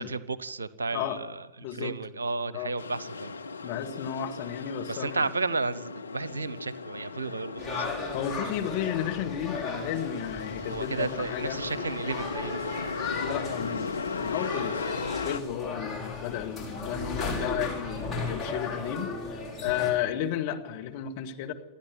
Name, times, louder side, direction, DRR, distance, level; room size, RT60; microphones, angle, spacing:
voice 1, 0.0-3.3 4.9-8.0 10.6-12.8, right 3 dB, 75° right, 19 dB, 0.8 m, -33 dB
voice 2, 1.6-1.9 2.5-2.7 3.6-5.2 8.1-11.6 13.2-14.8 15.2-21.5, left 10 dB, 50° left, 2 dB, 2.1 m, -33 dB
sound 1, 2.8-15.4, left 4 dB, 75° left, 0.7 m, -37 dB
sound 2, 7.6-19.9, left 3 dB, 10° left, 6.2 m, -36 dB
28.0 x 10.0 x 9.5 m, 1.0 s
figure-of-eight pair, 90°, 0 cm